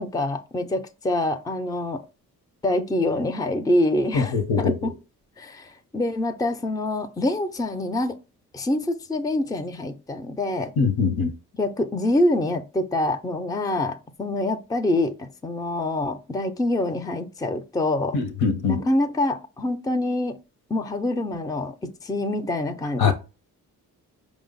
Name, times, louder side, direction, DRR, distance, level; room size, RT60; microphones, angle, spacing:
voice 1, 0.0-2.1 2.6-4.9 5.4-8.2 8.5-10.7 11.5-18.2 18.7-20.4 20.7-23.1, left 1 dB, 10° left, 0.5 m, -25 dB
voice 2, 4.3-4.7 10.8-11.3 18.1-18.8 23.0-23.1, left 5 dB, 75° left, 0.8 m, -22 dB
4.9 x 2.0 x 3.9 m
supercardioid pair, 55°, 37 cm